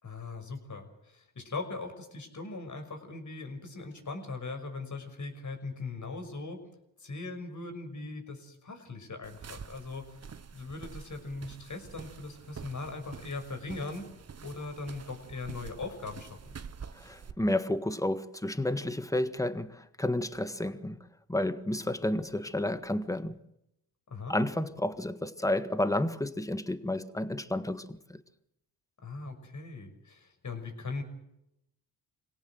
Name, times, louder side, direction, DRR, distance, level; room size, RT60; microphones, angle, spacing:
voice 1, 0.0-6.6 7.0-10.1 10.5-14.1 14.4-16.5 24.1-24.4 29.0-31.0, left 3 dB, 45° left, 6.0 m, -40 dB
sound 1, 9.2-17.3, right 6 dB, 35° right, 1.2 m, -47 dB
voice 2, 16.9-21.0 21.3-23.4 24.3-28.2, left 1 dB, 10° left, 1.6 m, -31 dB
26.0 x 17.5 x 7.8 m
cardioid pair, 70°, 43 cm